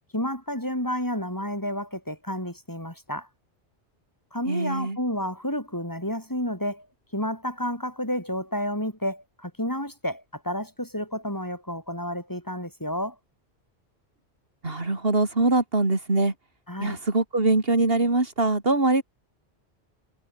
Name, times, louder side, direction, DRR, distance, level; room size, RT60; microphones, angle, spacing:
voice 1, 0.1-3.3 4.3-6.9 7.1-13.2 16.7-17.0, equal, 15° left, 5.9 m, -30 dB
voice 2, 4.5-5.0 14.6-16.3 16.8-19.0, right 2 dB, 60° right, 3.7 m, -23 dB
omnidirectional pair, 1.1 m